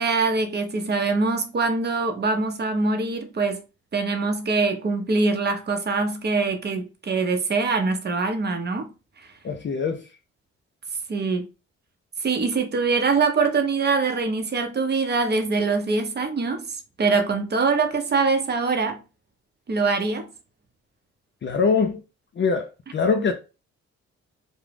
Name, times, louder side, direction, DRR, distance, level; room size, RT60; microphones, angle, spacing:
voice 1, 0.0-3.6 3.9-8.9 11.1-11.4 12.2-19.0 19.7-20.3 23.2-23.3, right 4 dB, 35° right, 0.7 m, -23 dB
voice 2, 9.4-10.0 21.4-22.0 22.4-23.3, left 5 dB, 40° left, 0.5 m, -23 dB
2.4 x 2.0 x 3.2 m
supercardioid pair, 55°, 31 cm